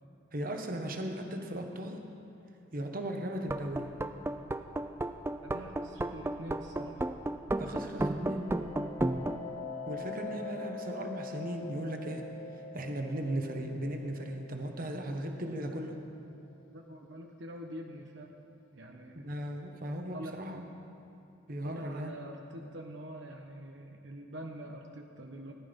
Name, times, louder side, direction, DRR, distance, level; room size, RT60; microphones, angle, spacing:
voice 1, 0.3-2.0 2.7-4.0 7.6-8.4 9.9-12.3 12.7-16.0 19.1-20.6 21.5-22.1, right 1 dB, 45° right, 4 dB, 1.2 m, -37 dB
sound 1, 3.4-9.4, right 1 dB, 10° right, 0.4 m, -33 dB
voice 2, 5.4-7.1 7.6-8.3 16.7-18.3 18.7-19.2 20.1-20.4 21.6-25.5, right 1 dB, 65° right, 2 dB, 1.0 m, -45 dB
sound 2, 8.1-17.5, left 3 dB, 85° left, 0.7 m, -45 dB
18.0 x 11.0 x 5.3 m, 2.8 s
head